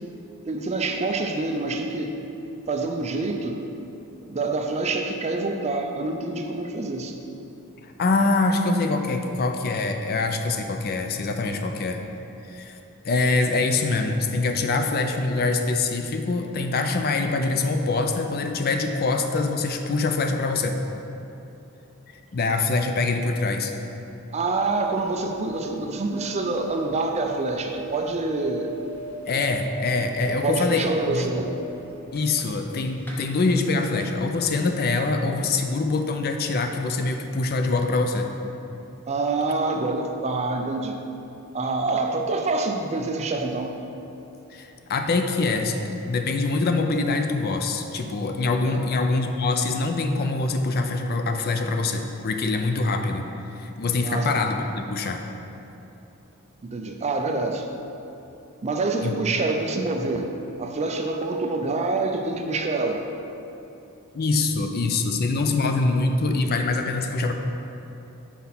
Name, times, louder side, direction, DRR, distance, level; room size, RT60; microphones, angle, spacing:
voice 1, 0.5-2.3 2.7-3.6 4.2-7.2 24.3-28.7 30.3-31.5 39.1-41.0 41.5-43.8 48.6-48.8 54.0-54.4 56.6-57.7 58.6-60.3 60.6-63.0, right 3 dB, 30° right, 3 dB, 0.4 m, -26 dB
voice 2, 7.8-12.0 12.5-12.7 13.0-20.8 22.3-23.7 29.3-31.3 32.1-38.3 44.5-53.3 53.5-55.2 59.0-59.1 64.1-67.3, left 3 dB, 45° left, 5 dB, 0.4 m, -24 dB
sound 1, 24.6-32.7 33.0-33.1, right 3 dB, 10° left, 1.0 m, -40 dB
5.8 x 4.2 x 5.9 m, 2.9 s
head